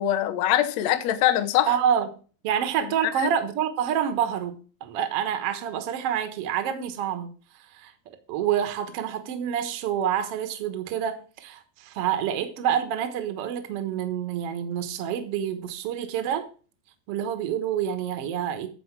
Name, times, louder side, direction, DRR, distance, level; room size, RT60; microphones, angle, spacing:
voice 1, 0.0-1.8 3.0-3.3, left 12 dB, 70° left, 1.7 m, -23 dB
voice 2, 1.7-2.1 2.4-7.3 7.7-7.9 8.3-16.5 17.1-18.7, right 9 dB, 60° right, 1.7 m, -27 dB
14.0 x 4.9 x 4.7 m
omnidirectional pair, 4.5 m